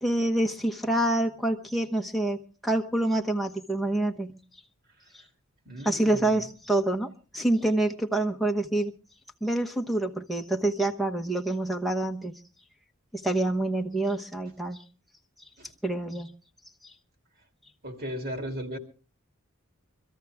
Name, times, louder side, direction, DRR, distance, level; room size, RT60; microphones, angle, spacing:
voice 1, 0.0-2.4 2.6-4.3 5.8-8.9 9.4-12.4 13.1-14.8 15.8-16.3, right 1 dB, ahead, 1.0 m, -27 dB
voice 2, 5.6-6.5 15.6-15.7 17.8-18.8, equal, 45° right, 2.8 m, -37 dB
24.0 x 14.0 x 3.5 m
head